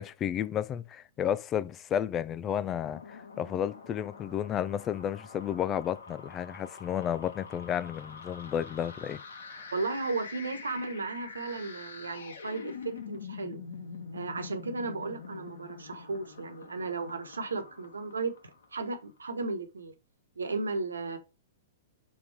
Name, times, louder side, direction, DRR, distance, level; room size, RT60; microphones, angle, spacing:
voice 1, 0.0-9.2 9.5-9.7, left 9 dB, 25° left, 0.5 m, -32 dB
sound 1, 2.6-18.9, left 5 dB, 70° left, 1.5 m, -46 dB
voice 2, 9.7-13.6 14.1-18.3 18.7-19.9 20.4-21.2, right 3 dB, 80° right, 1.3 m, -35 dB
5.8 x 4.1 x 4.8 m
figure-of-eight pair, 110°, 0 cm